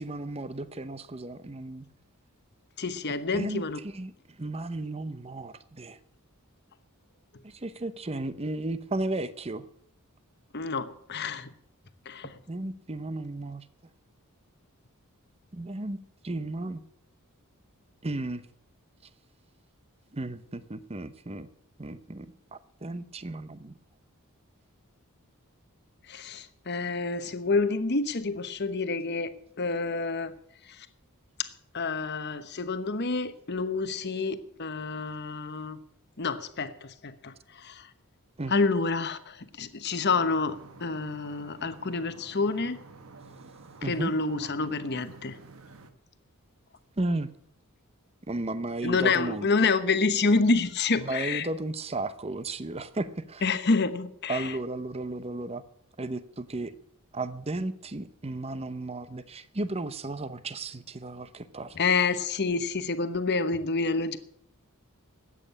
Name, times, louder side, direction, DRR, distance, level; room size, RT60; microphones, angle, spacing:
voice 1, 0.0-1.9 3.3-6.0 7.4-9.7 12.5-13.6 15.5-16.0 16.2-16.8 18.0-18.4 20.1-21.5 21.8-23.7 38.4-38.5 43.8-44.1 47.0-47.3 48.3-49.5 51.0-53.4 54.3-55.6 56.0-56.7 57.1-61.8, right 2 dB, 30° right, 14 dB, 0.8 m, -34 dB
voice 2, 2.8-3.8 10.5-11.5 12.0-12.4 26.1-30.3 30.7-30.9 31.4-35.8 36.2-37.9 38.5-42.8 43.8-45.4 48.8-51.5 53.4-54.5 61.7-64.2, left 4 dB, 50° left, 11 dB, 1.0 m, -28 dB
sound 1, 40.1-45.9, right 3 dB, 70° right, 1.3 m, -50 dB
13.5 x 9.0 x 8.7 m, 0.68 s
head